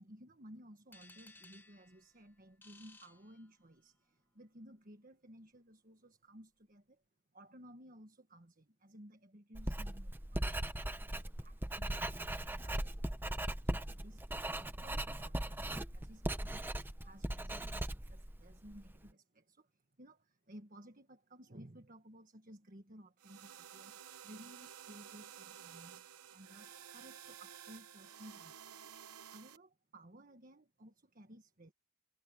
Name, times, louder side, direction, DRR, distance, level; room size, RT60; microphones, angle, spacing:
voice 1, 0.0-7.0 7.3-10.7 11.1-19.7 20.0-28.9 29.3-31.7, right 1 dB, 40° right, 1.5 m, -57 dB
sound 1, 0.9-4.0, left 2 dB, 10° left, 1.3 m, -61 dB
Writing, 9.5-19.0, right 1 dB, 10° right, 0.7 m, -39 dB
sound 2, 23.2-29.6, right 9 dB, 85° right, 0.9 m, -53 dB
head